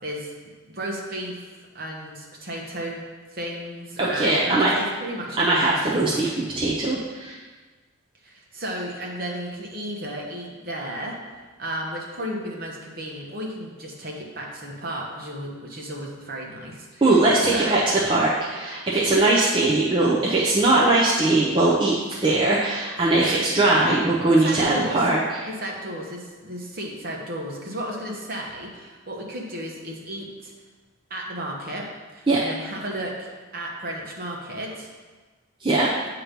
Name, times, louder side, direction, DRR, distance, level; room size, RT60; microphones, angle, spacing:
voice 1, 0.0-0.3 0.7-3.0 3.3-6.2 8.2-17.1 17.5-17.8 24.3-25.1 25.4-30.5 31.1-34.9, right 1 dB, 45° right, -1 dB, 1.1 m, -34 dB
voice 2, 4.0-4.7 5.4-7.4 17.0-17.8 18.1-25.2 32.3-32.4 35.6-35.9, right 2 dB, 25° right, -6 dB, 0.6 m, -20 dB
8.5 x 2.9 x 5.2 m, 1.4 s
head